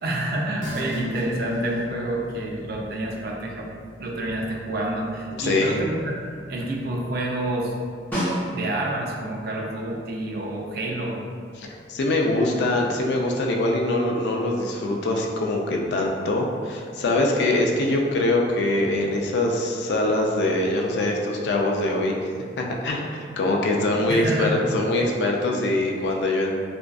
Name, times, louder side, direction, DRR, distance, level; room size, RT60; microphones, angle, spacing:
voice 1, 0.0-3.7 4.0-7.8 8.5-11.2 24.1-24.6, right 1 dB, 60° right, -1 dB, 0.4 m, -28 dB
sound 1, 0.6-10.3, equal, 90° right, 0.8 m, -41 dB
voice 2, 5.4-5.7 11.6-22.3 22.6-26.5, left 2 dB, 75° left, 0 dB, 0.3 m, -23 dB
Snare drum, 8.1-9.0 13.5-13.6, equal, 10° left, 0.6 m, -27 dB
2.5 x 2.3 x 2.2 m, 2.1 s
head